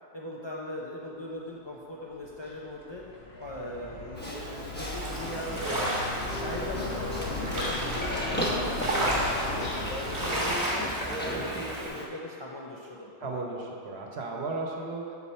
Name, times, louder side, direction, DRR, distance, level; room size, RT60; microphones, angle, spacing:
voice 1, 0.1-3.0 3.4-6.0 6.4-9.6 10.0-13.4, left 1 dB, 35° left, -4 dB, 0.4 m, -40 dB
sound 1, 2.2-10.6, left 2 dB, 70° left, 1.0 m, -36 dB
Livestock farm animals working animals, 4.1-12.1, equal, 10° left, 0.9 m, -37 dB
sound 2, 5.0-11.9, right 1 dB, 25° right, 1.3 m, -33 dB
voice 2, 13.2-15.1, right 3 dB, 70° right, 0 dB, 1.1 m, -35 dB
6.9 x 4.3 x 4.2 m, 2.4 s
omnidirectional pair, 1.1 m